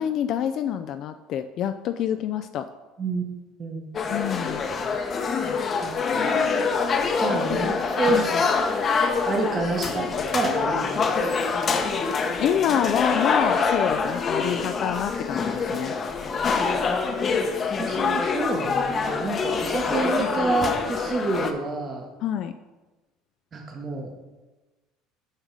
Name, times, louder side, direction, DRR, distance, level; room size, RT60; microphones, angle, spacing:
voice 1, 0.0-2.7 4.1-4.6 7.5-7.7 8.1-8.5 12.4-16.0 22.2-22.5, left 9 dB, 55° left, 8 dB, 0.3 m, -27 dB
voice 2, 3.6-4.1 5.8-6.3 7.2-8.5 9.3-11.1 17.8-22.0 23.5-24.1, right 3 dB, 35° right, 1 dB, 1.2 m, -28 dB
sound 1, 3.9-21.5, left 5 dB, 35° left, 0.8 m, -25 dB
7.2 x 5.4 x 4.8 m, 1.2 s
supercardioid pair, 110°, 0 cm